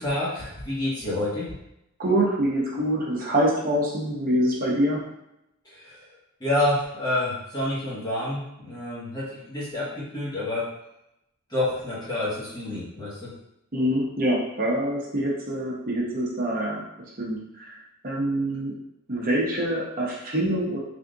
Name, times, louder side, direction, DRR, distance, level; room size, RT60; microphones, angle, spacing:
voice 1, 0.0-1.5 5.6-6.0 6.4-10.7 11.5-13.3, left 1 dB, 20° left, -7 dB, 1.1 m, -28 dB
voice 2, 2.0-5.0 13.7-16.8 17.2-17.8 18.0-18.7 19.1-20.8, right 1 dB, 40° right, -4 dB, 0.8 m, -25 dB
3.4 x 2.4 x 3.8 m, 0.84 s
head